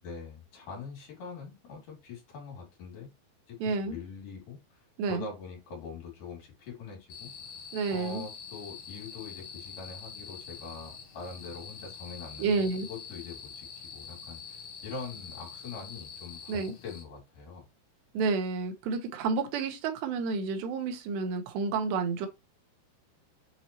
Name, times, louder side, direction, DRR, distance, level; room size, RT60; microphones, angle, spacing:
voice 1, 0.0-3.1 3.5-4.8 5.1-7.6 7.9-17.6, left 4 dB, 55° left, 3.8 m, -43 dB
voice 2, 3.6-4.0 5.0-5.2 7.7-8.2 12.4-12.9 16.5-16.7 18.1-22.3, right 4 dB, 90° right, 3.2 m, -30 dB
sound 1, 7.1-17.0, left 6 dB, 80° left, 1.4 m, -45 dB
7.6 x 4.2 x 2.9 m
omnidirectional pair, 4.7 m